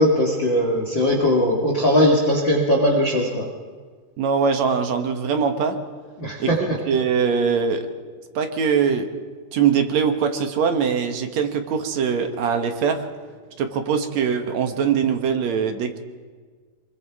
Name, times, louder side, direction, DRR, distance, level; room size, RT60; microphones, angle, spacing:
voice 1, 0.0-3.5 6.2-6.8, equal, 35° left, -1 dB, 2.3 m, -19 dB
voice 2, 4.2-5.8 6.4-6.5 6.9-7.9 8.4-9.1 9.5-13.0 13.6-16.0, right 6 dB, 60° right, 6 dB, 2.2 m, -22 dB
24.5 x 22.0 x 4.8 m, 1.5 s
omnidirectional pair, 4.3 m